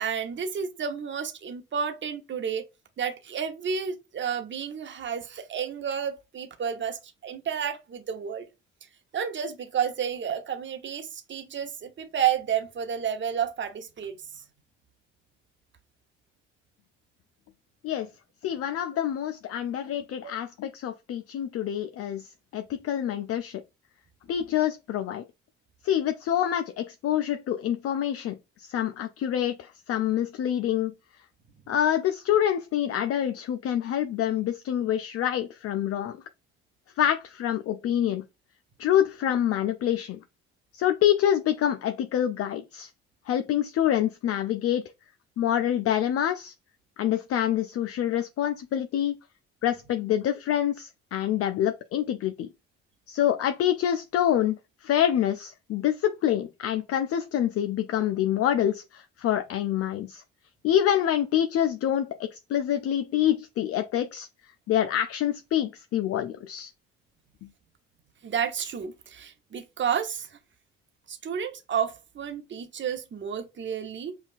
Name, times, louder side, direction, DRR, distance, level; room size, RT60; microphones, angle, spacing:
voice 1, 0.0-2.6 3.0-8.5 9.1-14.4 20.2-20.3 68.2-70.4 71.1-74.1, right 8 dB, 40° right, 0.9 m, -31 dB
voice 2, 18.4-23.6 24.3-25.2 25.8-30.9 31.7-36.2 37.0-38.2 38.8-40.2 40.7-42.9 43.3-44.8 45.4-46.5 47.0-49.2 49.6-52.5 53.1-60.2 60.6-64.3 64.7-66.7 67.4-67.5, left 10 dB, 50° left, 0.5 m, -26 dB
5.4 x 2.3 x 2.5 m
hypercardioid pair, 55°, 31 cm